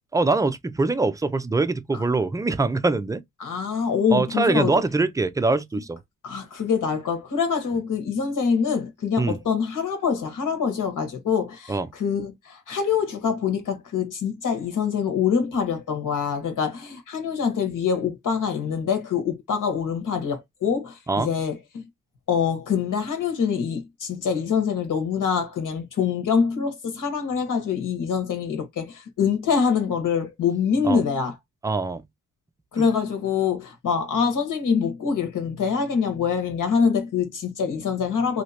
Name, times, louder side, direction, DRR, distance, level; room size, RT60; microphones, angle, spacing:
voice 1, 0.1-3.2 4.1-6.0 9.2-9.4 11.7-11.9 21.1-21.3 30.8-31.0 31.6-32.0 32.8-32.9, right 3 dB, 10° right, 0.4 m, -23 dB
voice 2, 3.4-4.8 6.2-21.8 22.3-31.3 32.7-38.4, left 6 dB, 70° left, 1.4 m, -25 dB
3.1 x 2.8 x 2.8 m
wide cardioid pair, 115°, 32 cm